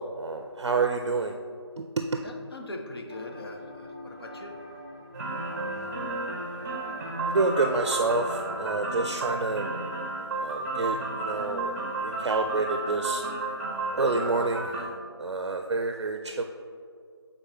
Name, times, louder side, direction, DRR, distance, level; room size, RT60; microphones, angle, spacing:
voice 1, 0.0-1.4 1.8-2.2 7.3-9.7 10.4-11.7 12.0-13.2 13.9-16.4, right 3 dB, 75° right, 5 dB, 0.5 m, -28 dB
voice 2, 2.2-4.5, left 1 dB, 60° left, 2 dB, 0.8 m, -41 dB
sound 1, 3.1-8.7, left 2 dB, 15° left, 0.5 m, -44 dB
sound 2, 5.1-14.8, right 2 dB, 35° right, 0.8 m, -32 dB
8.9 x 4.0 x 3.0 m, 2.3 s
figure-of-eight pair, 170°, 15 cm